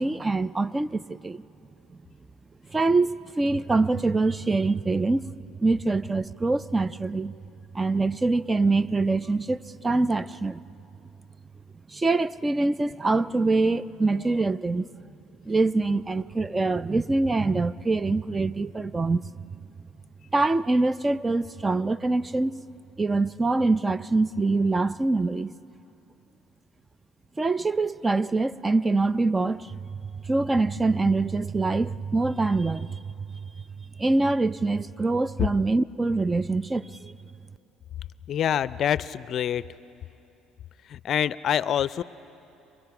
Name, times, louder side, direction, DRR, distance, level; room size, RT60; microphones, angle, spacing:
voice 1, 0.0-1.4 2.7-5.3 5.6-7.4 7.7-10.6 11.9-14.9 15.4-19.2 20.3-22.6 23.0-25.5 27.4-33.3 34.0-37.1, right 3 dB, 20° right, 0.5 m, -24 dB
voice 2, 38.3-39.6 40.9-42.0, left 9 dB, 55° left, 0.5 m, -26 dB
29.0 x 24.0 x 5.9 m
supercardioid pair, 85°, 0 cm